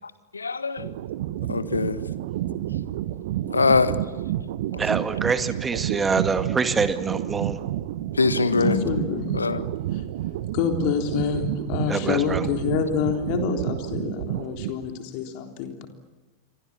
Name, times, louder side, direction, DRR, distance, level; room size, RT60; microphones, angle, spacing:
voice 1, 0.3-0.9 1.5-2.0 3.5-3.9 8.2-8.8 9.3-9.6, left 4 dB, 75° left, 13 dB, 1.5 m, -22 dB
sound 1, 0.8-15.0, right 13 dB, 55° right, 1.1 m, -30 dB
voice 2, 4.8-7.6 11.9-12.5, right 4 dB, 15° right, 10 dB, 1.9 m, -25 dB
voice 3, 8.5-9.5 9.9-10.0 10.5-15.9, left 7 dB, 45° left, 5 dB, 3.6 m, -27 dB
29.0 x 24.5 x 7.3 m, 1.2 s
figure-of-eight pair, 90°, 0 cm